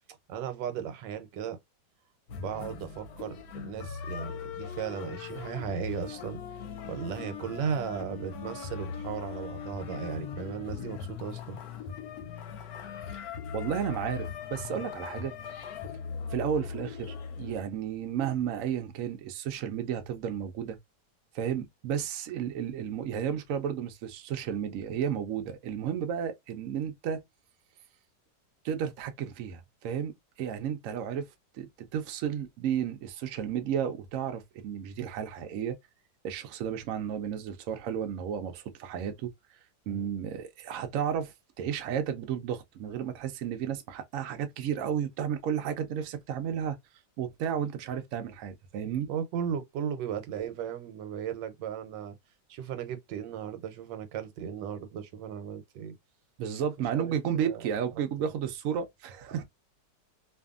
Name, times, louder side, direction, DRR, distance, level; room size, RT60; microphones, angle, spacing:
voice 1, 0.3-1.6 2.4-6.4 6.8-11.6 39.9-40.1 49.1-52.2 52.5-55.9 56.9-57.7 58.2-58.3, right 8 dB, 90° right, 1.3 m, -36 dB
sound 1, 2.3-17.6, left 6 dB, 70° left, 1.0 m, -39 dB
voice 2, 13.5-15.3 16.3-20.8 21.3-27.2 28.6-30.1 30.4-31.3 31.5-35.8 36.2-39.3 39.9-46.8 47.2-49.1 56.4-59.4, right 8 dB, 70° right, 0.8 m, -33 dB
2.6 x 2.6 x 2.3 m
omnidirectional pair, 1.9 m